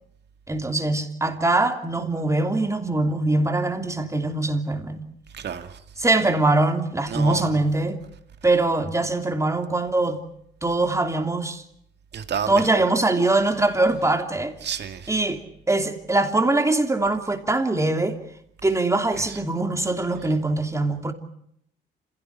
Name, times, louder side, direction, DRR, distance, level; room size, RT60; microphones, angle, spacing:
voice 1, 0.5-5.1 6.0-8.0 8.4-10.2 10.6-11.6 12.5-14.5 15.1-15.4 15.7-18.2 18.6-21.1, right 2 dB, 15° right, 3.0 m, -22 dB
voice 2, 5.3-5.8 7.1-7.5 12.1-12.6 14.6-15.1, right 8 dB, 60° right, 2.3 m, -30 dB
26.5 x 16.5 x 9.7 m
cardioid pair, 90°, 20 cm